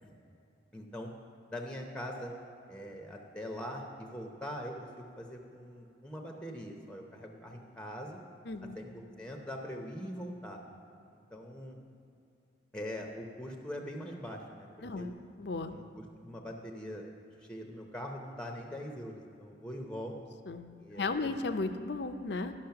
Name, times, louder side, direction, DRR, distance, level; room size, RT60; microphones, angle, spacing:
voice 1, 0.7-1.1 1.5-2.3 2.7-8.2 8.8-8.9 9.2-10.6 11.1-11.8 12.7-14.7 15.0-15.1 15.7-15.8 16.2-17.0 17.5-20.1 20.8-21.1, equal, 5° left, 2 dB, 0.6 m, -42 dB
voice 2, 8.4-8.8 14.8-15.7 20.5-20.7 21.0-22.5, left 3 dB, 60° left, 9 dB, 0.5 m, -35 dB
12.0 x 6.1 x 5.8 m, 2.7 s
head